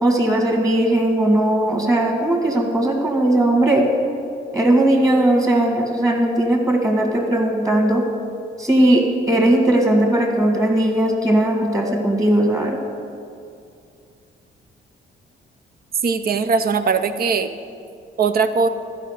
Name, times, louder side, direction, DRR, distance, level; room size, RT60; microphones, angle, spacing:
voice 1, 0.0-3.9 4.5-8.1 8.6-12.8, right 1 dB, 15° right, 1 dB, 1.9 m, -18 dB
voice 2, 16.0-17.5 18.2-18.7, right 5 dB, 50° right, 10 dB, 0.6 m, -20 dB
12.5 x 5.0 x 6.6 m, 2.4 s
cardioid pair, 90°, 20 cm